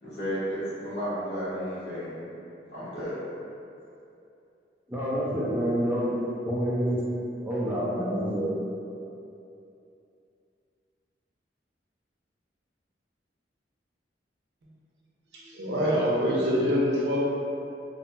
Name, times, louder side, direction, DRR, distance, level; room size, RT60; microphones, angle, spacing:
voice 1, 0.0-2.2 2.7-3.1, equal, 75° left, -12 dB, 1.1 m, -33 dB
voice 2, 4.9-7.0 7.4-8.5, equal, 10° right, -8 dB, 0.4 m, -27 dB
voice 3, 15.3-17.2, equal, 70° right, -5 dB, 0.5 m, -25 dB
2.7 x 2.7 x 2.2 m, 2.7 s
head